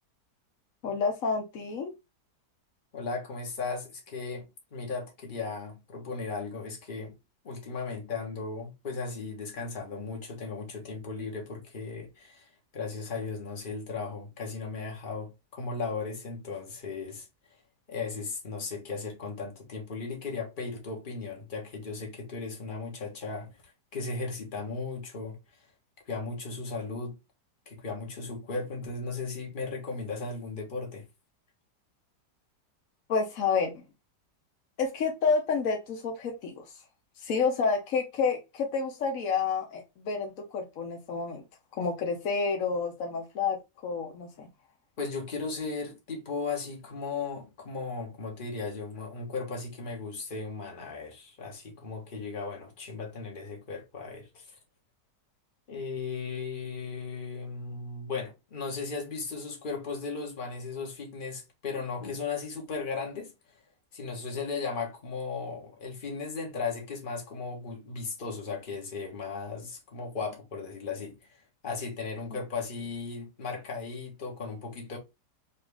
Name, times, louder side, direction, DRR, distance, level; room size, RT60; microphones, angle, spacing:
voice 1, 0.8-1.9 33.1-33.7 34.8-36.6 37.2-41.4 41.7-43.6 43.8-44.5, left 5 dB, 60° left, 1.1 m, -29 dB
voice 2, 2.9-7.2 7.4-12.5 12.7-17.3 17.9-23.6 23.9-25.4 26.1-27.1 27.7-31.1 45.0-54.6 55.7-63.3 63.9-75.0, left 4 dB, 30° left, 1.3 m, -36 dB
4.1 x 2.8 x 3.4 m
omnidirectional pair, 1.8 m